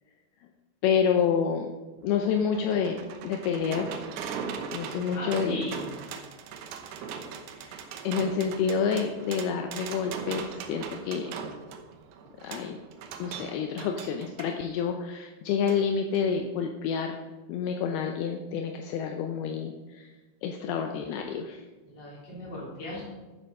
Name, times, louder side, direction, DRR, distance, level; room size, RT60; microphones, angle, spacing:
voice 1, 0.8-1.7 2.0-3.9 4.7-5.6 7.0-7.1 7.5-11.3 12.4-12.8 13.2-17.2 17.5-20.1 20.4-21.6, left 6 dB, 80° left, 3 dB, 2.6 m, -28 dB
sound 1, 2.0-14.5 15.7-15.8 16.2-16.3, right 6 dB, 80° right, 2.9 m, -40 dB
voice 2, 5.1-5.9 21.9-23.1, left 2 dB, 30° left, -5 dB, 3.7 m, -37 dB
12.0 x 7.7 x 5.4 m, 1.2 s
omnidirectional pair, 4.7 m